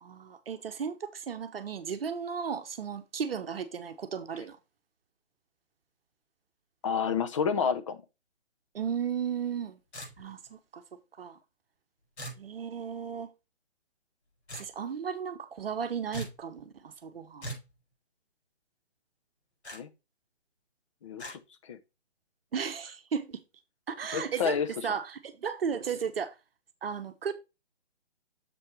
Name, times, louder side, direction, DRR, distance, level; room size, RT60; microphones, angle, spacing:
voice 1, 0.0-4.6 8.7-9.8 10.2-10.8 11.2-11.4 12.4-13.3 14.6-17.5 22.5-23.4 23.9-24.6 24.8-26.3 26.8-27.3, right 7 dB, 60° right, 1.0 m, -35 dB
voice 2, 6.8-8.0 19.7-19.9 21.0-21.8 24.1-24.7, left 6 dB, 30° left, 0.6 m, -30 dB
sound 1, 9.9-10.5 12.2-12.4 14.5-14.7 16.1-16.4 17.4-17.7 19.6-19.8 21.2-21.4, right 1 dB, 75° left, 4.5 m, -40 dB
7.0 x 4.4 x 4.8 m
figure-of-eight pair, 145°, 33 cm